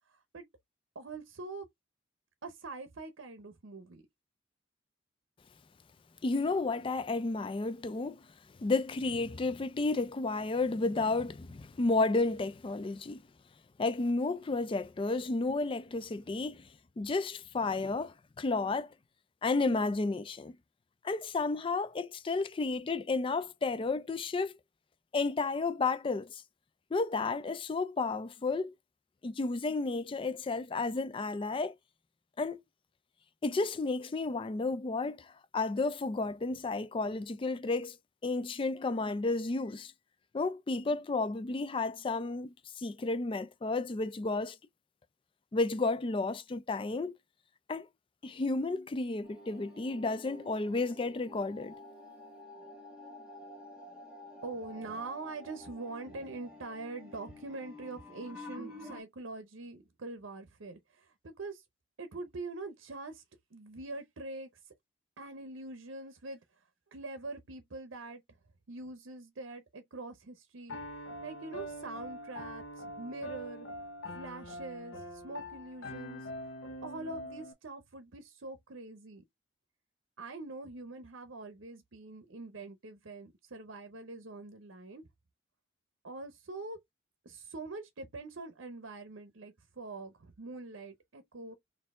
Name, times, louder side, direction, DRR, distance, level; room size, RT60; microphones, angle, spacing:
voice 1, 0.9-1.7 2.4-4.0 54.4-61.6 62.0-63.2 63.5-64.7 65.2-66.4 66.9-68.2 68.7-70.8 71.2-73.7 74.1-76.3 76.8-79.2 80.2-85.0 86.0-86.8 87.2-91.6, right 3 dB, 75° right, 0.7 m, -44 dB
voice 2, 6.2-8.2 8.6-13.2 13.8-16.7 17.0-18.9 19.4-20.6 21.0-24.5 25.1-26.4 26.9-28.7 29.2-31.7 32.4-32.6 33.4-38.0 38.2-39.9 40.3-44.6 45.5-47.1 47.7-47.9 48.2-51.7, left 3 dB, 25° left, 0.3 m, -32 dB
sound 1, 49.2-59.0, left 1 dB, 5° right, 1.7 m, -50 dB
Piano, 70.7-77.5, left 1 dB, 75° left, 0.8 m, -43 dB
4.3 x 2.6 x 3.6 m
head